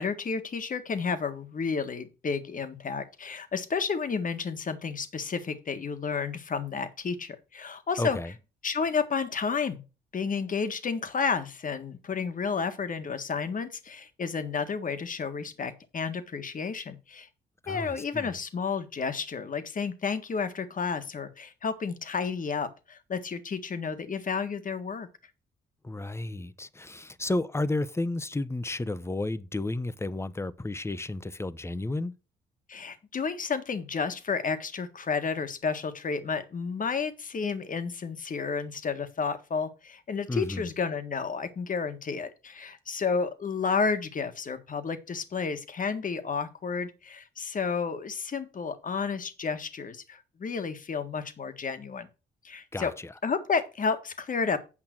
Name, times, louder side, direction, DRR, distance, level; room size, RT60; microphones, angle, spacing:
voice 1, 0.0-8.2 8.6-9.8 10.1-17.3 17.7-25.1 32.7-52.1 52.4-52.9 53.2-54.6, left 5 dB, 45° left, 1.7 m, -31 dB
voice 2, 8.0-8.3 17.6-18.3 25.8-32.1 40.3-40.7 52.7-53.1, left 2 dB, 15° left, 0.9 m, -32 dB
9.0 x 5.6 x 6.1 m
supercardioid pair, 60°, 19 cm